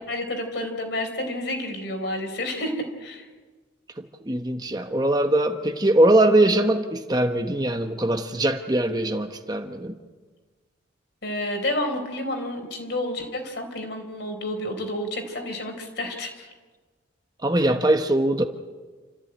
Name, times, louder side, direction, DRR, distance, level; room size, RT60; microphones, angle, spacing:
voice 1, 0.1-3.3 11.2-16.5, left 1 dB, 55° left, 4 dB, 4.2 m, -30 dB
voice 2, 4.0-10.0 17.4-18.4, right 1 dB, 20° right, 6 dB, 1.0 m, -21 dB
28.0 x 14.5 x 9.0 m, 1.4 s
head